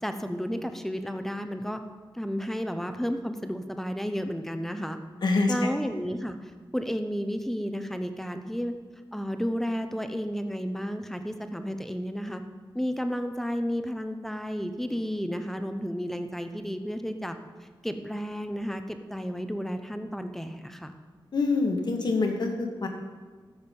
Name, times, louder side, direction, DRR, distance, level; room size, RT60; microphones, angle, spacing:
voice 1, 0.0-1.8 2.1-5.0 5.5-8.7 9.1-12.4 12.7-20.9, equal, 5° left, 7 dB, 0.7 m, -32 dB
voice 2, 5.2-5.8 21.3-22.9, left 3 dB, 55° left, 3 dB, 1.5 m, -26 dB
13.5 x 7.1 x 5.4 m, 1.5 s
wide cardioid pair, 155°, 9 cm